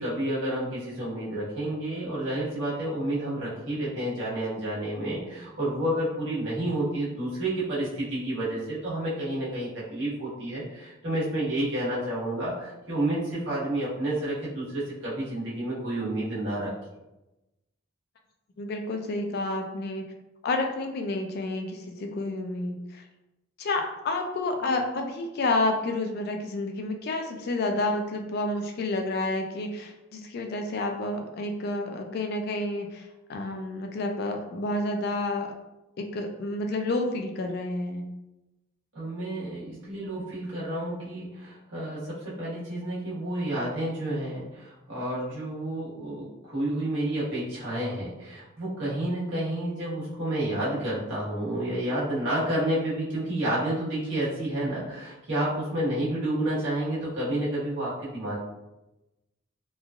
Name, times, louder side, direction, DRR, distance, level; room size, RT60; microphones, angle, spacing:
voice 1, 0.0-16.7 38.9-58.4, right 1 dB, 65° right, -8 dB, 1.2 m, -30 dB
voice 2, 18.6-20.0 20.4-23.0 23.6-35.5 36.0-38.0, left 2 dB, 50° left, 4 dB, 0.3 m, -30 dB
3.1 x 2.3 x 2.3 m, 0.98 s
head